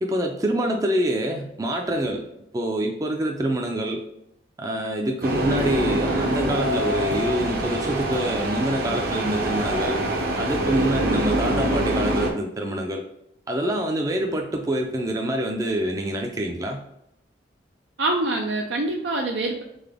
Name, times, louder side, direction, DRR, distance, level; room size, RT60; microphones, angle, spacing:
voice 1, 0.0-2.2 2.5-4.0 4.6-10.0 10.4-13.0 13.5-16.8, right 1 dB, 20° right, 2 dB, 0.4 m, -26 dB
sound 1, 5.2-12.3, right 1 dB, 55° right, 0.8 m, -24 dB
voice 2, 18.0-19.6, right 2 dB, 90° right, 1 dB, 0.5 m, -25 dB
3.9 x 3.7 x 3.4 m, 0.78 s
head